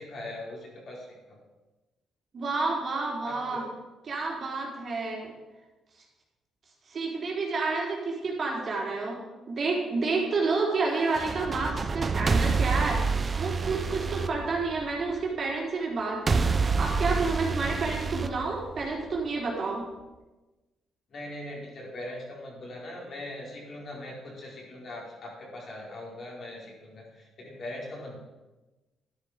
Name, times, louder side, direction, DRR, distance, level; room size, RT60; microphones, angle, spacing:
voice 1, 0.0-1.4 3.3-3.6 21.1-28.2, left 1 dB, 50° left, -3 dB, 4.8 m, -41 dB
voice 2, 2.3-3.6 4.1-5.3 6.9-9.2 9.5-19.9, right 3 dB, 50° right, -2 dB, 3.8 m, -30 dB
sound 1, 11.0-15.1 16.3-19.1, right 4 dB, 35° right, 0.8 m, -28 dB
12.0 x 10.0 x 5.2 m, 1.1 s
cardioid pair, 90°, 0 cm